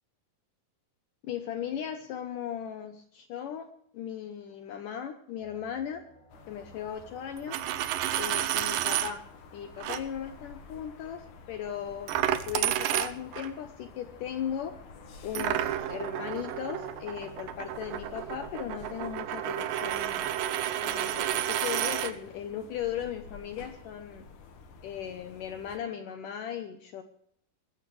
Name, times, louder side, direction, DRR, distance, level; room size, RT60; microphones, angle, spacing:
voice 1, 1.2-6.0 6.5-7.6 8.2-9.2 9.5-14.7 15.2-20.3 20.8-24.2 24.8-27.0, left 9 dB, 80° left, 8 dB, 1.9 m, -37 dB
sound 1, 5.3-21.3, right 3 dB, 25° left, 5.4 m, -55 dB
sound 2, 6.3-25.8, left 4 dB, 55° left, 2.5 m, -51 dB
Coin (dropping), 7.4-9.1 9.8-10.0 12.1-13.5 15.4-22.1, right 12 dB, 80° right, 2.0 m, -31 dB
20.5 x 14.5 x 3.3 m, 0.66 s
omnidirectional pair, 4.9 m